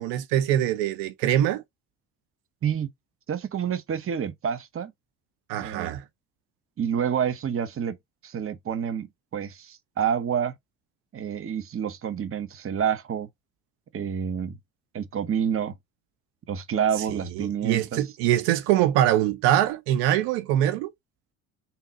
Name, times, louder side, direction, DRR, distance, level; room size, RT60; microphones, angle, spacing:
voice 1, 0.0-1.6 5.5-6.0 17.1-20.9, right 12 dB, 80° right, 0.8 m, -23 dB
voice 2, 3.3-4.9 5.6-6.0 6.8-8.0 8.2-10.5 11.1-13.3 13.9-14.6 14.9-15.7 16.5-18.0, right 8 dB, 30° right, 0.8 m, -28 dB
3.7 x 2.8 x 3.9 m
hypercardioid pair, 60°, 41 cm